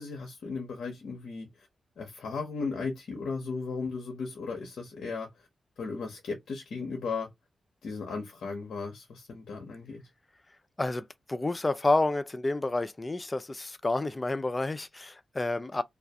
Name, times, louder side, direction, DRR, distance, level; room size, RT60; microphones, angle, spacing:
voice 1, 0.0-1.7 2.0-5.3 5.8-7.3 7.8-10.0, left 4 dB, 75° left, 0.6 m, -36 dB
voice 2, 10.8-15.8, left 2 dB, 30° left, 0.3 m, -29 dB
2.3 x 2.1 x 2.6 m
cardioid pair, 55°, 0 cm